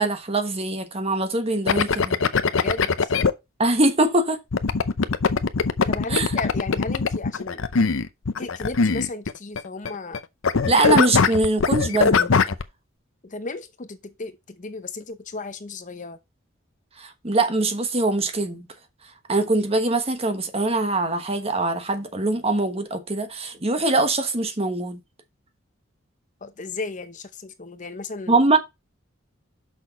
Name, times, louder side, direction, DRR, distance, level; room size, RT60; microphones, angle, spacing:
voice 1, 0.0-2.2 3.6-4.4 6.1-6.3 10.7-12.4 17.0-18.7 19.3-25.0 28.3-28.6, right 2 dB, 30° right, 1.2 m, -22 dB
sound 1, 1.7-3.3 4.5-10.2 10.4-12.6, left 5 dB, 75° left, 0.6 m, -21 dB
voice 2, 2.5-3.1 5.9-7.7 8.4-10.2 13.2-16.2 26.4-28.4, left 3 dB, 40° left, 0.7 m, -35 dB
6.4 x 6.0 x 4.1 m
head